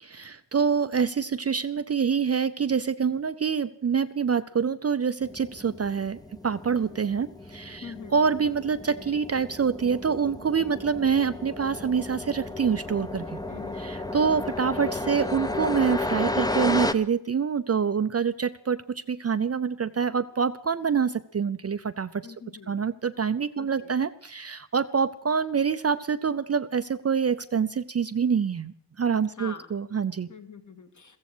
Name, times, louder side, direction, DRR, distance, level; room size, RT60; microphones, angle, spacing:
voice 1, 0.0-13.4 13.7-22.2 22.7-30.3, right 6 dB, 35° right, 11 dB, 0.6 m, -26 dB
sound 1, 5.2-16.9, left 2 dB, 10° left, 0.7 m, -33 dB
voice 2, 7.8-8.2 13.5-13.8 22.2-22.8 23.6-23.9 29.4-29.7 30.3-31.2, left 6 dB, 45° left, 6 dB, 2.2 m, -43 dB
15.5 x 15.0 x 6.1 m, 0.64 s
wide cardioid pair, 180°, 42 cm